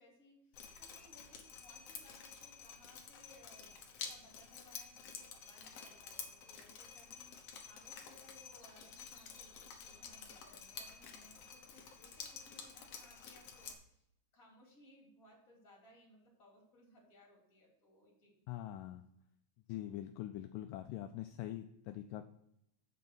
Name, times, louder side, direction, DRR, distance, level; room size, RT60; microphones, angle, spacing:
voice 1, 0.0-14.0 14.3-18.3, left 1 dB, 25° left, -2 dB, 3.0 m, -64 dB
Drip, 0.5-13.7, left 6 dB, 65° left, 1.6 m, -50 dB
voice 2, 18.5-19.0 19.7-22.3, left 13 dB, 85° left, 7 dB, 1.9 m, -43 dB
7.5 x 5.4 x 6.2 m, 0.78 s
omnidirectional pair, 4.2 m